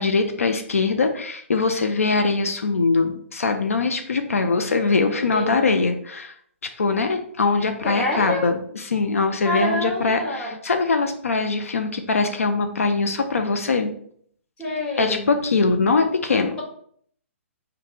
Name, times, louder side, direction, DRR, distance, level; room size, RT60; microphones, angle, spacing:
voice 1, 0.0-6.3 6.8-13.9 15.0-16.6, left 4 dB, 80° left, 6 dB, 0.4 m, -22 dB
voice 2, 5.3-5.6 7.9-8.4 9.4-10.5 14.6-15.3, left 1 dB, 15° left, -3 dB, 1.1 m, -26 dB
3.9 x 2.2 x 3.3 m, 0.62 s
figure-of-eight pair, 125°, 7 cm